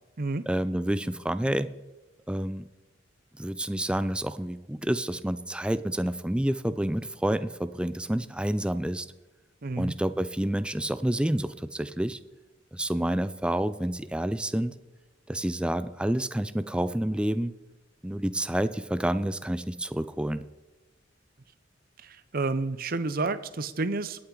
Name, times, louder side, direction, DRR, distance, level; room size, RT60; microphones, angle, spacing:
voice 1, 0.5-1.7 2.3-2.7 3.3-9.1 9.8-12.2 12.7-14.7 15.3-17.5 18.0-20.4, right 1 dB, 5° right, 12 dB, 0.4 m, -29 dB
voice 2, 9.6-9.9 22.0-24.2, right 3 dB, 50° right, 13 dB, 0.7 m, -30 dB
21.0 x 8.7 x 3.9 m, 1.1 s
head